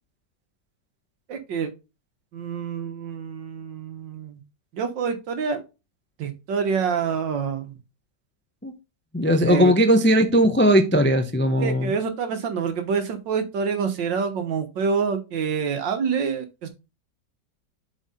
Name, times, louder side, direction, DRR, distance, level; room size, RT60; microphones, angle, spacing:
voice 1, 1.3-1.7 2.3-4.4 4.7-5.6 6.2-7.7 9.4-9.7 11.6-16.7, right 6 dB, 85° right, 1.9 m, -27 dB
voice 2, 9.1-11.9, equal, 15° left, 0.4 m, -18 dB
7.4 x 4.7 x 4.2 m
omnidirectional pair, 1.9 m